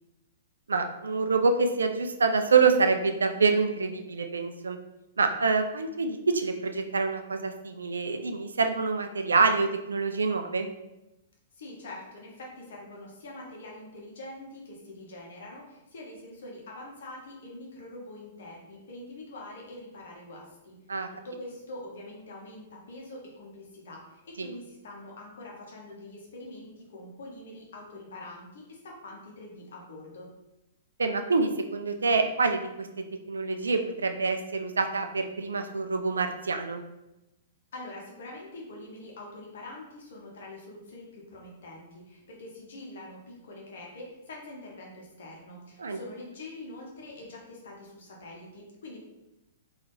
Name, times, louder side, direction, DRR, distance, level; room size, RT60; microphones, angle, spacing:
voice 1, 0.7-4.8 5.2-10.7 20.9-21.1 24.4-24.5 31.0-32.9 33.3-36.8 45.8-46.0, right 4 dB, 75° right, 6 dB, 0.4 m, -26 dB
voice 2, 11.5-20.7 21.1-30.3 37.7-49.0, left 2 dB, 60° left, -2 dB, 1.1 m, -44 dB
4.1 x 2.8 x 3.1 m, 0.94 s
figure-of-eight pair, 110°, 0 cm